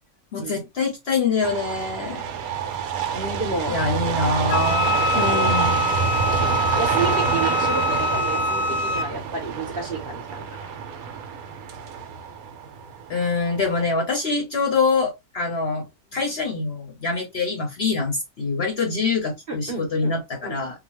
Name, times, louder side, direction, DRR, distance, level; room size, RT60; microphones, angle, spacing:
voice 1, 0.3-2.2 3.7-5.8 13.1-20.8, left 4 dB, 50° left, 0.9 m, -25 dB
sound 1, 1.4-13.8, right 7 dB, 75° right, 1.1 m, -27 dB
voice 2, 3.1-3.7 5.1-5.5 6.8-10.7 19.5-20.1 20.4-20.6, right 3 dB, 45° right, 1.0 m, -30 dB
Wind instrument woodwind instrument, 4.5-9.1, left 2 dB, 80° left, 0.5 m, -24 dB
2.8 x 2.2 x 2.9 m
omnidirectional pair, 1.6 m